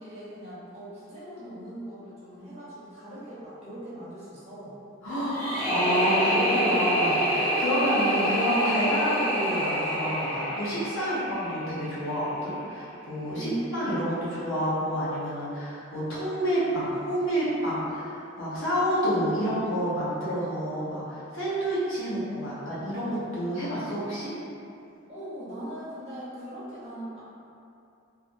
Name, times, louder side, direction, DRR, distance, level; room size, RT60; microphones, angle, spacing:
voice 1, 0.0-4.8 13.4-14.0 25.1-27.2, right 1 dB, 30° right, -11 dB, 0.7 m, -39 dB
voice 2, 5.0-24.3, equal, 75° left, -10 dB, 0.8 m, -29 dB
sound 1, 5.3-12.3, equal, 25° left, 0.5 m, -27 dB
2.4 x 2.1 x 2.6 m, 2.6 s
head